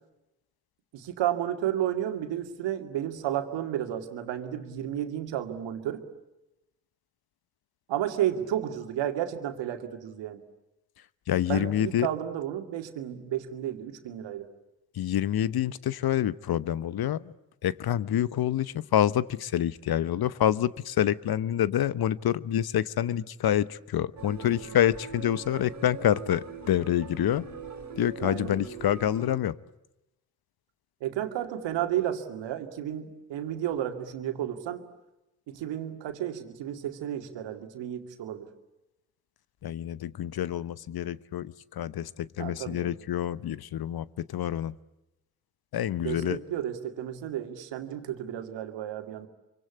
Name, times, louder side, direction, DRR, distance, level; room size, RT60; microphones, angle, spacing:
voice 1, 0.9-6.0 7.9-10.4 11.5-14.5 28.2-28.5 31.0-34.8 35.5-38.5 42.4-42.9 46.0-49.3, right 11 dB, 75° right, 6 dB, 2.4 m, -32 dB
voice 2, 11.3-12.1 14.9-17.3 17.6-27.5 28.0-29.5 39.6-44.7 45.7-46.4, left 11 dB, 55° left, 19 dB, 1.0 m, -27 dB
sound 1, 24.2-29.4, right 5 dB, 40° right, 3.6 m, -42 dB
26.0 x 24.5 x 8.3 m, 0.94 s
hypercardioid pair, 45°, 43 cm